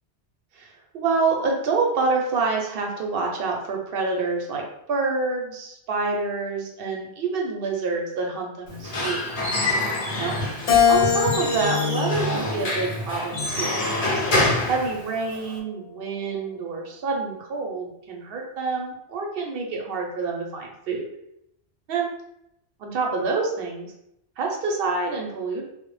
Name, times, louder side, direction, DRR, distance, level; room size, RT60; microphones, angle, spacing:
voice 1, 0.5-4.6 4.9-9.3 10.2-10.3 10.9-13.8 14.1-21.1 21.9-22.1 22.8-23.9 24.4-25.6, right 4 dB, 65° right, 0 dB, 0.7 m, -27 dB
Squeak / Wood, 8.7-15.6, left 2 dB, 50° left, 0.5 m, -26 dB
Keyboard (musical), 10.7-13.2 13.8-15.0, left 7 dB, 85° left, 0.9 m, -24 dB
2.0 x 2.0 x 3.0 m, 0.80 s
omnidirectional pair, 1.2 m